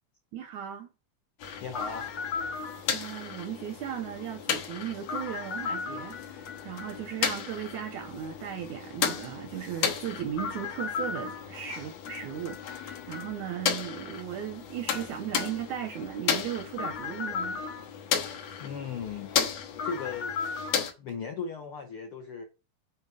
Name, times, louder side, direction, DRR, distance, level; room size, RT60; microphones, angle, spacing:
voice 1, 0.3-0.9 2.9-17.6, right 10 dB, 80° right, 1.7 m, -37 dB
sound 1, 1.4-20.9, left 7 dB, 60° left, 1.9 m, -34 dB
voice 2, 1.6-2.1 18.6-19.4 19.8-20.3 21.0-22.4, left 5 dB, 75° left, 1.2 m, -37 dB
8.3 x 4.6 x 4.9 m
omnidirectional pair, 4.2 m